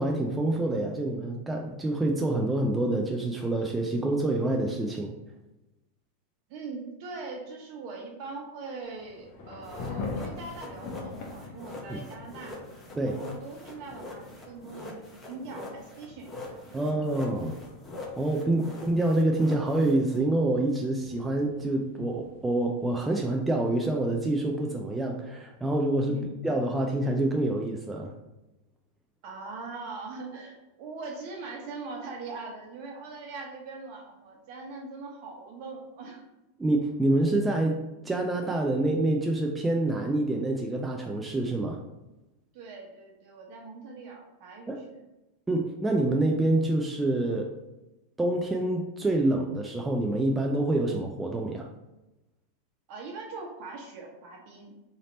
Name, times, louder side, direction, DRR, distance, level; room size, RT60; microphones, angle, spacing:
voice 1, 0.0-5.2 11.9-12.0 13.0-13.2 16.7-17.6 18.2-26.2 26.4-28.1 36.6-37.8 38.0-41.8 44.7-44.8 45.5-47.5 48.2-51.7, right 2 dB, 10° right, 1 dB, 0.4 m, -27 dB
voice 2, 6.5-12.6 13.0-16.8 18.5-18.7 26.1-26.3 29.2-36.3 42.5-45.0 52.9-54.7, right 3 dB, 55° right, 0 dB, 1.0 m, -41 dB
Thunder / Rain, 8.8-23.3, left 3 dB, 50° left, 0.9 m, -44 dB
sound 1, 9.6-20.2, left 2 dB, 15° left, 0.8 m, -44 dB
3.2 x 2.8 x 4.0 m, 0.99 s
supercardioid pair, 125°, 0 cm